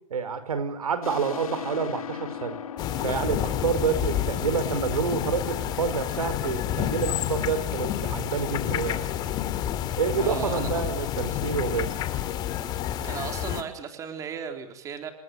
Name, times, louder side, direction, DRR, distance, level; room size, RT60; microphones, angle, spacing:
voice 1, 0.1-2.6 3.0-9.1 10.0-11.9, right 6 dB, 90° right, 12 dB, 5.2 m, -28 dB
sound 1, 1.0-6.3, left 9 dB, 75° left, 3.6 m, -39 dB
sound 2, 2.8-13.6, left 11 dB, 25° left, 2.2 m, -29 dB
voice 2, 10.2-10.7 13.0-15.1, right 7 dB, 20° right, 6 dB, 3.6 m, -36 dB
28.5 x 22.0 x 9.1 m, 0.65 s
hypercardioid pair, 150°, 18 cm